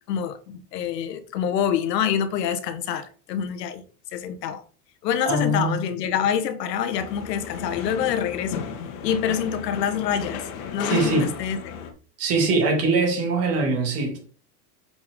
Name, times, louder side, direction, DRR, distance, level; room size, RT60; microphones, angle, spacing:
voice 1, 0.1-3.8 4.1-4.6 5.0-8.7 9.0-10.4 10.7-11.8, left 8 dB, 90° left, 1.5 m, -26 dB
voice 2, 5.2-5.8 10.9-11.3 12.2-14.2, right 3 dB, 30° right, 2.8 m, -22 dB
sound 1, 6.9-11.9, left 6 dB, 60° left, 2.0 m, -34 dB
7.2 x 6.3 x 3.8 m
supercardioid pair, 160°, 47 cm